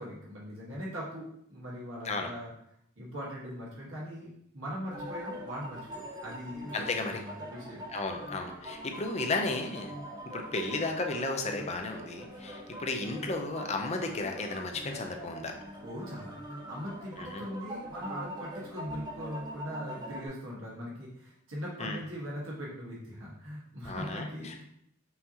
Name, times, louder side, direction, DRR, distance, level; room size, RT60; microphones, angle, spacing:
voice 1, 0.0-2.5 3.0-4.3 4.5-7.8 8.7-8.9 15.8-16.3 16.7-24.6, equal, 80° right, -5 dB, 1.5 m, -40 dB
sound 1, 4.9-20.3, equal, 20° right, 0.6 m, -43 dB
voice 2, 6.7-7.2 7.9-9.9 10.3-15.5 17.2-17.4 21.8-22.0 23.8-24.6, left 3 dB, 35° left, 4 dB, 0.5 m, -34 dB
5.5 x 2.8 x 2.8 m, 0.72 s
head